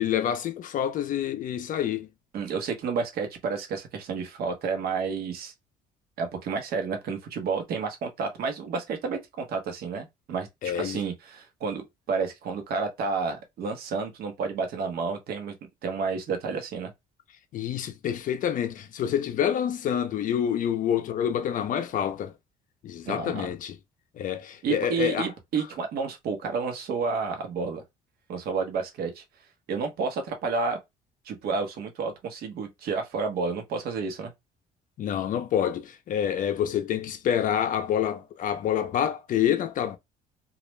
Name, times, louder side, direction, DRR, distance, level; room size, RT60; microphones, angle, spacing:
voice 1, 0.0-2.1 10.6-11.0 17.5-22.3 22.8-23.7 24.2-25.3 35.0-40.0, left 9 dB, 50° left, 0.4 m, -27 dB
voice 2, 2.3-5.5 6.2-10.5 10.7-11.8 12.1-15.5 15.8-16.9 23.1-23.5 24.6-27.8 28.3-29.2 29.7-30.8 31.3-34.3, right 5 dB, 65° right, 0.9 m, -30 dB
2.4 x 2.1 x 3.1 m
cardioid pair, 110°, 17 cm